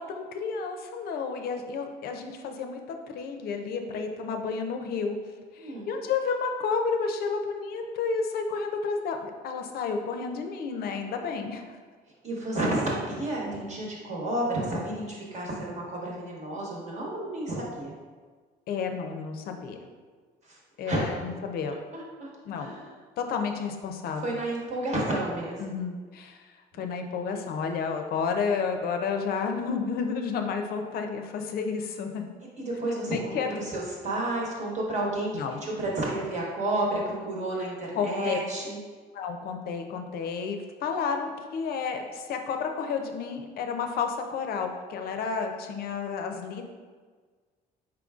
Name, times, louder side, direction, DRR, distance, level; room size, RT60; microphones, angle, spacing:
voice 1, 0.0-5.2 5.5-11.7 18.7-19.8 20.8-21.8 22.5-22.7 23.2-24.4 25.6-26.5 26.8-32.3 32.9-33.6 35.3-35.6 37.9-38.4 39.1-46.6, left 5 dB, 65° left, 5 dB, 0.5 m, -31 dB
voice 2, 5.6-5.9 12.2-17.9 20.5-20.6 20.8-21.2 21.9-22.3 22.5-22.9 24.2-25.6 32.6-35.3 35.6-38.8, right 1 dB, 45° right, -3 dB, 1.2 m, -31 dB
4.5 x 3.7 x 2.4 m, 1.5 s
cardioid pair, 110°, 17 cm